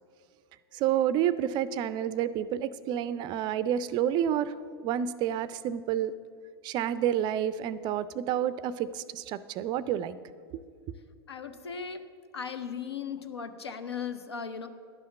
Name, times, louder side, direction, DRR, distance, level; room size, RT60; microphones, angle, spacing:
voice 1, 0.7-4.5 4.8-6.2 6.6-10.2, right 10 dB, 35° right, 16 dB, 0.4 m, -29 dB
voice 2, 11.3-12.0 12.3-14.7, left 6 dB, 80° left, 9 dB, 0.7 m, -37 dB
11.0 x 5.6 x 7.2 m, 2.1 s
figure-of-eight pair, 90°, 13 cm